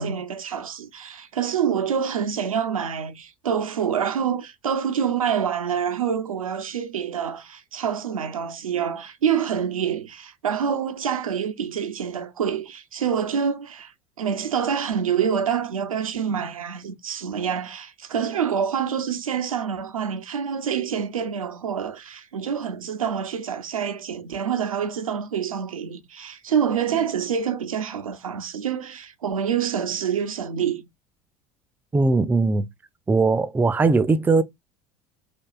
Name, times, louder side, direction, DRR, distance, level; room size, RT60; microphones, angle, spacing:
voice 1, 0.0-13.9 14.2-30.8, right 7 dB, 75° right, 0.6 m, -26 dB
voice 2, 31.9-32.7 33.1-34.4, right 3 dB, 10° right, 0.4 m, -19 dB
4.4 x 2.9 x 2.3 m
figure-of-eight pair, 65°, 18 cm